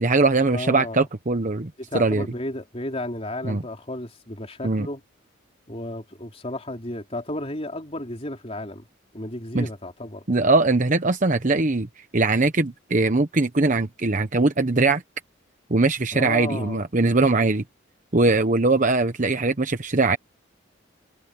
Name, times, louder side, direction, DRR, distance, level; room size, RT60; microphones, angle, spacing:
voice 1, 0.0-2.2 3.4-3.6 4.6-4.9 9.5-9.7 10.3-11.9 12.1-15.0 15.7-17.6 18.1-20.2, right 3 dB, 40° right, 1.0 m, -21 dB
voice 2, 0.5-1.0 1.8-5.0 5.7-8.9 9.1-10.2 16.1-16.8, left 1 dB, 30° left, 3.6 m, -33 dB
head